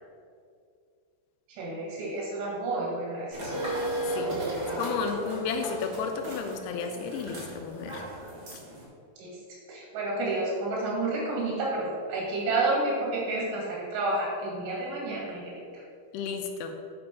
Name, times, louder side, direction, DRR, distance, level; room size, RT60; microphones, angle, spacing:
voice 1, 1.5-3.5 4.1-4.8 9.2-9.4 9.7-15.8, right 2 dB, 85° right, -4 dB, 4.1 m, -30 dB
sound 1, 3.3-8.8, right 1 dB, 40° right, 1.6 m, -35 dB
voice 2, 4.8-8.0 8.5-8.6 16.1-16.7, left 5 dB, 85° left, 5 dB, 2.8 m, -32 dB
8.0 x 6.1 x 5.2 m, 2.3 s
omnidirectional pair, 4.8 m